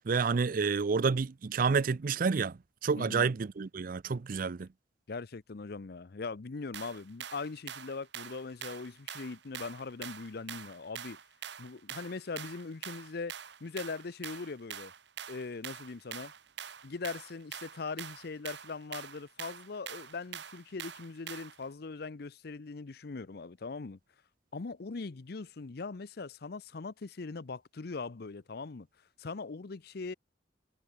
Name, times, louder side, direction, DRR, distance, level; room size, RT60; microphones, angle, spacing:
voice 1, 0.1-2.6 2.8-4.7, right 5 dB, 50° right, 0.5 m, -29 dB
voice 2, 2.9-3.3 5.1-11.2 11.6-13.3 13.6-14.9 15.3-16.3 16.8-24.0 24.5-28.9 29.2-30.1, left 4 dB, 60° left, 0.6 m, -41 dB
sound 1, 6.7-21.6, right 8 dB, 75° right, 1.8 m, -45 dB
head